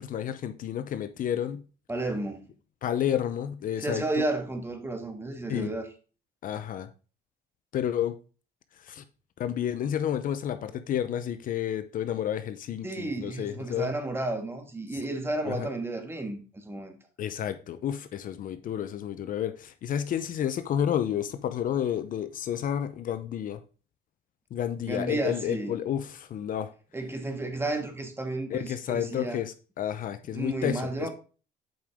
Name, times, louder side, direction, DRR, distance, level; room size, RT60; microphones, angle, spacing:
voice 1, 0.0-1.6 2.8-4.0 5.5-5.7 6.4-6.9 7.7-8.1 8.8-9.0 9.4-13.9 15.4-15.7 17.2-23.6 24.5-26.7 28.5-31.1, left 10 dB, 55° left, 0.7 m, -30 dB
voice 2, 1.9-2.5 3.8-5.9 12.8-16.9 24.9-25.8 26.9-29.4 30.3-31.1, right 2 dB, 15° right, 1.5 m, -32 dB
7.9 x 5.3 x 3.6 m
cardioid pair, 110°, 17 cm